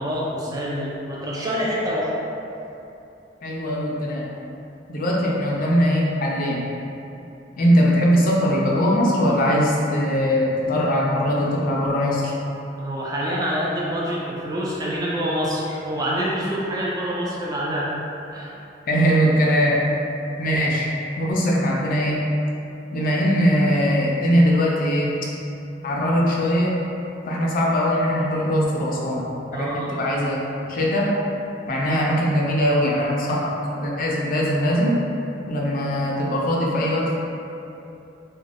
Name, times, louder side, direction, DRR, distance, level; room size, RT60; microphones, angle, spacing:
voice 1, 0.0-2.1 12.8-17.9 18.3-18.6 29.5-29.9, equal, 20° right, -5 dB, 0.3 m, -26 dB
voice 2, 3.4-4.3 4.9-6.7 7.6-12.3 18.9-19.8 20.4-20.9 21.2-22.3 22.9-25.3 25.8-26.8 27.3-30.4 30.7-31.2 31.7-35.0 35.5-37.2, equal, 50° left, -3 dB, 0.4 m, -21 dB
2.4 x 2.2 x 3.3 m, 2.8 s
head